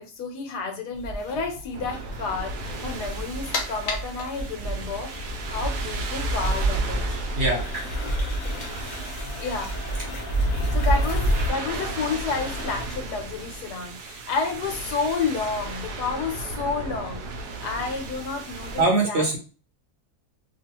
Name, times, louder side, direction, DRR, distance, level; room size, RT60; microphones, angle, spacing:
voice 1, 0.0-5.1 5.5-7.1 9.4-9.8 10.7-17.3 17.6-19.3, left 4 dB, 85° left, 3 dB, 1.4 m, -30 dB
sound 1, 0.9-11.5, right 1 dB, 40° left, 0.7 m, -29 dB
sound 2, 1.7-18.8, right 3 dB, 80° right, 1.2 m, -36 dB
sound 3, 3.1-12.8, left 2 dB, 60° left, 1.0 m, -38 dB
voice 2, 7.4-7.9 18.8-19.4, right 2 dB, 50° right, -1 dB, 0.9 m, -22 dB
3.0 x 2.4 x 2.9 m, 0.34 s
omnidirectional pair, 1.7 m